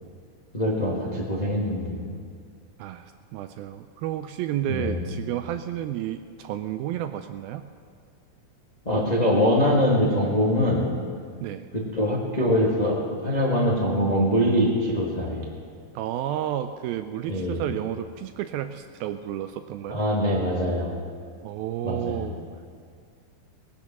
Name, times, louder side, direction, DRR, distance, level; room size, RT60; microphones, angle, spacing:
voice 1, 0.5-2.0 4.6-5.0 8.8-10.8 11.7-15.5 17.3-17.6 19.9-20.9 21.8-22.3, equal, 65° left, -4 dB, 0.4 m, -23 dB
voice 2, 2.8-7.7 11.4-11.7 16.0-20.0 21.4-22.4, right 11 dB, 85° right, 9 dB, 2.2 m, -31 dB
19.5 x 10.5 x 6.1 m, 2.1 s
omnidirectional pair, 4.6 m